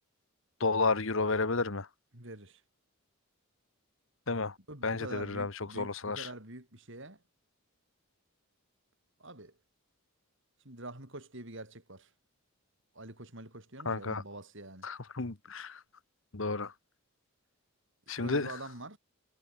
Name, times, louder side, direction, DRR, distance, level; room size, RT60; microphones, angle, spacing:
voice 1, 0.6-1.9 4.3-4.5 4.8-6.3 13.8-14.2 14.8-15.8 16.3-16.7 18.1-18.5, left 3 dB, 60° left, 1.3 m, -31 dB
voice 2, 2.1-2.6 4.7-7.2 9.2-9.6 10.6-12.1 12.9-14.9 18.2-19.0, right 2 dB, 55° right, 5.6 m, -45 dB
head